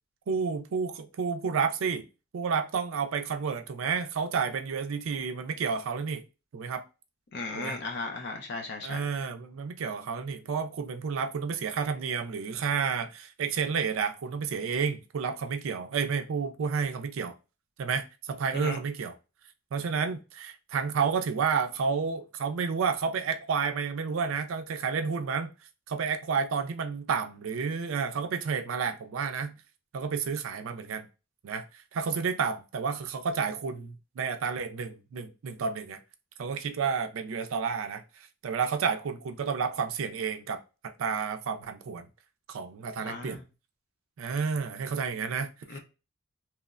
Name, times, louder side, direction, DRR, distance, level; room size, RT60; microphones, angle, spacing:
voice 1, 0.3-2.1 2.3-6.2 6.5-6.8 7.5-7.8 8.8-17.3 17.8-19.1 19.7-25.5 25.9-29.5 29.9-31.1 31.4-31.6 31.9-36.0 36.4-38.0 38.4-42.1 42.5-43.4 44.2-45.8, right 6 dB, 80° right, 0.4 m, -30 dB
voice 2, 7.3-9.0 18.5-18.8 43.0-43.4 45.7-45.8, left 3 dB, 55° left, 0.5 m, -36 dB
3.0 x 2.1 x 2.3 m
head